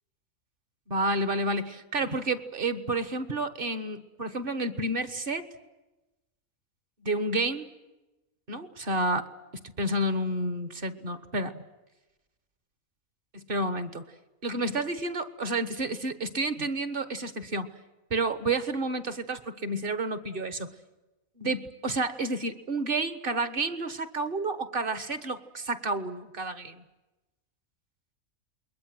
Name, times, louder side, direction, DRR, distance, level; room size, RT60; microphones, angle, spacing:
voice 1, 0.9-5.5 7.0-7.7 8.5-9.3 9.5-11.6 13.3-14.1 14.4-17.7 18.1-20.7 21.4-26.8, right 2 dB, 40° right, 12 dB, 1.5 m, -30 dB
28.5 x 22.0 x 7.9 m, 1.0 s
omnidirectional pair, 1.5 m